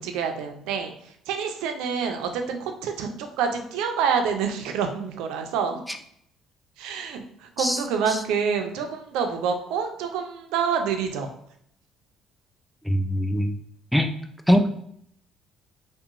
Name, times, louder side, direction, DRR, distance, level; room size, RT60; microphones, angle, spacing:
voice 1, 0.0-5.8 6.8-11.3, right 6 dB, 80° right, 5 dB, 0.4 m, -27 dB
voice 2, 12.8-13.6 13.9-14.1 14.5-14.7, equal, ahead, 6 dB, 0.4 m, -21 dB
2.8 x 2.1 x 2.5 m, 0.70 s
supercardioid pair, 75°, 0 cm